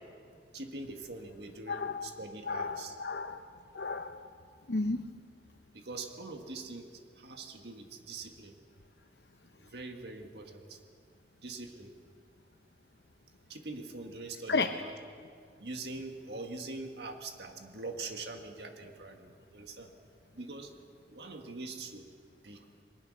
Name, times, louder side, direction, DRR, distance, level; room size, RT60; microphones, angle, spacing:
voice 1, 0.5-3.0 5.7-6.9 7.2-8.6 9.6-10.8 11.4-11.9 13.5-14.9 15.6-19.9 20.3-20.8 21.1-22.1 22.4-22.7, right 3 dB, 70° right, 4 dB, 1.7 m, -43 dB
voice 2, 1.7-2.1 2.5-3.4 3.7-4.3 4.7-5.0 14.5-14.7, left 3 dB, 70° left, 6 dB, 0.8 m, -33 dB
28.0 x 21.5 x 6.5 m, 2.3 s
head